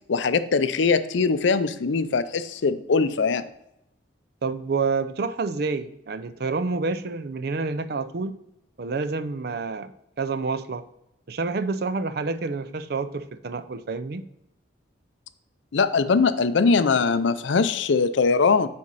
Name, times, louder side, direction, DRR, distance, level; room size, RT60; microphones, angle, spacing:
voice 1, 0.1-3.5 15.7-18.7, left 4 dB, 70° left, 13 dB, 0.5 m, -21 dB
voice 2, 4.4-8.4 8.8-9.9 10.2-10.8 11.3-14.2, right 4 dB, 55° right, 12 dB, 0.4 m, -28 dB
9.6 x 4.3 x 4.0 m, 0.82 s
head